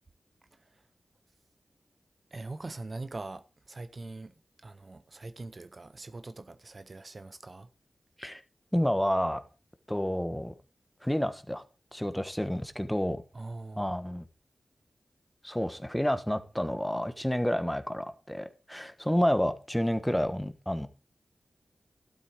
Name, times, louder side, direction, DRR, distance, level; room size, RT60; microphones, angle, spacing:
voice 1, 2.3-4.3 4.6-7.7 13.3-13.9, right 2 dB, 50° right, 0.7 m, -42 dB
voice 2, 8.7-9.4 9.9-10.5 11.0-11.6 11.9-13.2 13.8-14.3 15.4-20.9, equal, 5° left, 1.4 m, -29 dB
12.5 x 8.2 x 4.6 m
cardioid pair, 55°, 0 cm